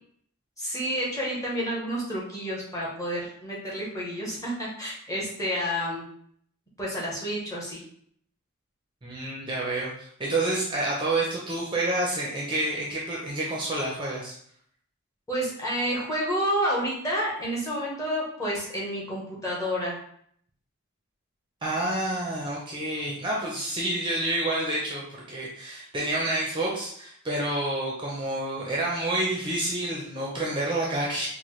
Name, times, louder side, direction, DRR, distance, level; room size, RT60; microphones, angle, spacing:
voice 1, 0.6-6.0 6.8-7.8 15.3-20.0, equal, 15° left, -5 dB, 1.0 m, -29 dB
voice 2, 9.0-14.3 21.6-31.3, right 1 dB, 20° right, -4 dB, 0.6 m, -29 dB
4.2 x 2.2 x 3.1 m, 0.64 s
head